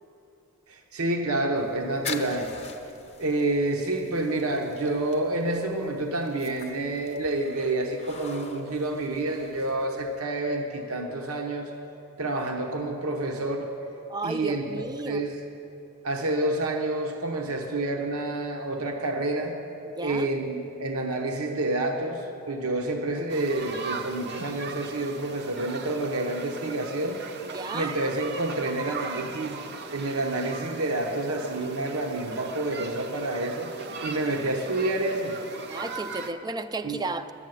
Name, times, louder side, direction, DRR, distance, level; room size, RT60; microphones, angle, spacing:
voice 1, 0.7-2.5 2.8-2.9 3.2-11.7 12.2-13.7 14.2-15.4 16.0-19.6 20.0-27.2 27.7-29.6 29.9-33.7 34.0-35.4 36.8-37.0, right 2 dB, 75° right, 3 dB, 1.0 m, -28 dB
sound 1, 1.6-10.2, left 5 dB, 30° left, 0.8 m, -44 dB
voice 2, 14.1-15.2 19.9-20.3 27.4-28.0 35.7-37.3, right 3 dB, 20° right, 11 dB, 0.4 m, -33 dB
sound 2, 23.3-36.3, right 4 dB, 50° right, 0.7 m, -38 dB
11.5 x 8.3 x 9.1 m, 2.9 s
head